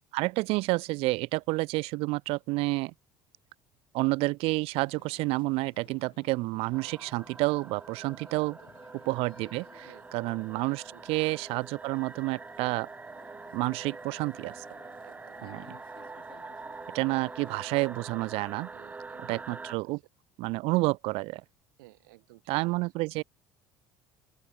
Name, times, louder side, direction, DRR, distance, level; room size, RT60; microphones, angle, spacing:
voice 1, 0.1-2.9 3.9-8.6 9.1-12.9 13.5-14.6 15.4-15.8 16.9-18.7 19.2-20.0 20.4-21.4 22.5-23.2, right 23 dB, 70° right, 0.5 m, -29 dB
sound 1, 4.7-17.6, left 12 dB, 55° left, 4.8 m, -58 dB
sound 2, 6.7-19.8, right 4 dB, 15° right, 0.4 m, -45 dB
voice 2, 10.6-11.0 15.0-15.4 17.0-17.1 18.7-19.6 20.7-20.8 21.8-22.8, right 22 dB, 85° right, 3.0 m, -56 dB
open air
supercardioid pair, 80°, 10 cm